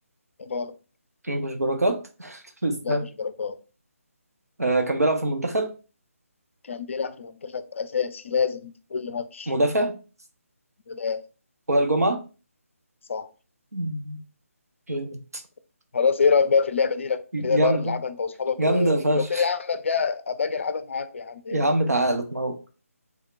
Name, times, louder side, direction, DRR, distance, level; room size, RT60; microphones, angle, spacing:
voice 1, 0.4-0.7 2.8-3.6 6.6-9.5 10.9-11.2 13.1-13.3 15.9-21.7, left 5 dB, 55° left, 0.4 m, -26 dB
voice 2, 1.2-3.0 4.6-5.7 9.5-10.0 11.7-12.2 13.7-14.2 14.9-15.4 17.3-18.0 18.6-19.4 21.5-22.6, right 1 dB, 85° right, 0.6 m, -24 dB
3.4 x 2.1 x 3.7 m
figure-of-eight pair, 150°, 8 cm